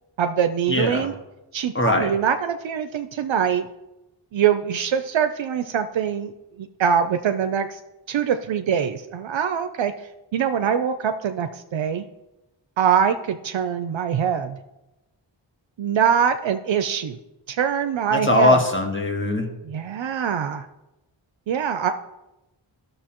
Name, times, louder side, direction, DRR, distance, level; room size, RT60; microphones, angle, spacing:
voice 1, 0.2-1.1 1.5-3.7 4.3-6.3 6.6-7.8 8.1-9.9 10.3-12.0 12.8-14.6 15.8-17.2 17.5-18.6 19.6-20.7 21.5-21.9, right 8 dB, 75° right, 8 dB, 0.6 m, -23 dB
voice 2, 0.7-1.1 1.7-2.1 18.1-19.5, left 2 dB, 25° left, 2 dB, 1.6 m, -20 dB
12.5 x 6.6 x 3.0 m, 0.97 s
cardioid pair, 55°, 46 cm